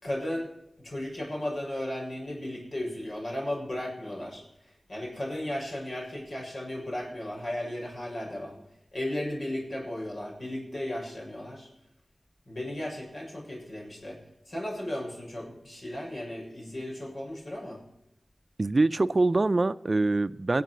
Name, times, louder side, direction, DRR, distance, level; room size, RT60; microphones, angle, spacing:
voice 1, 0.0-0.5 0.8-8.6 8.9-11.7 12.5-14.2 14.5-17.8, left 1 dB, 70° left, 6.7 m, -35 dB
voice 2, 18.6-20.6, right 2 dB, 50° right, 0.5 m, -24 dB
19.0 x 7.6 x 6.2 m
cardioid pair, 40°, 0 cm